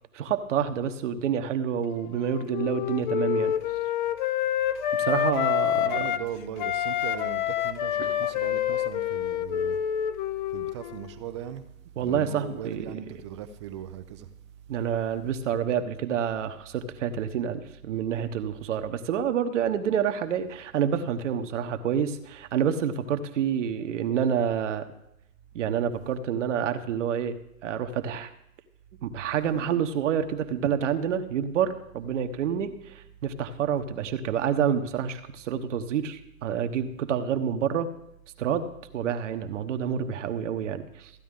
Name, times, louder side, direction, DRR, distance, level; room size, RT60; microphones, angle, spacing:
voice 1, 0.1-3.5 4.9-6.0 8.0-8.3 9.3-9.4 12.0-13.0 14.7-24.9 25.5-27.4 27.6-28.3 29.0-37.9 38.4-38.7 38.9-41.1, right 8 dB, 55° right, 1.1 m, -28 dB
Wind instrument woodwind instrument, 1.9-6.3 6.6-11.1, left 11 dB, 35° left, 0.6 m, -28 dB
voice 2, 5.7-9.8 10.5-11.6 12.0-14.3, right 9 dB, 20° right, 0.4 m, -38 dB
14.5 x 10.0 x 3.7 m
hypercardioid pair, 125°, 43 cm